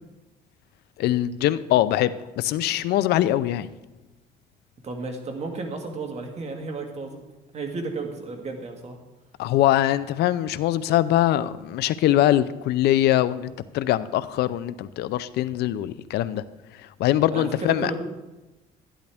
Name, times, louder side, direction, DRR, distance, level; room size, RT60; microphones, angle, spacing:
voice 1, 1.0-3.7 9.4-16.4 17.0-17.9, left 13 dB, 75° left, 15 dB, 0.6 m, -22 dB
voice 2, 4.8-7.2 7.5-9.0 17.3-18.0, right 3 dB, 40° right, 3 dB, 1.8 m, -32 dB
11.5 x 11.0 x 3.5 m, 1.1 s
cardioid pair, 110°, 17 cm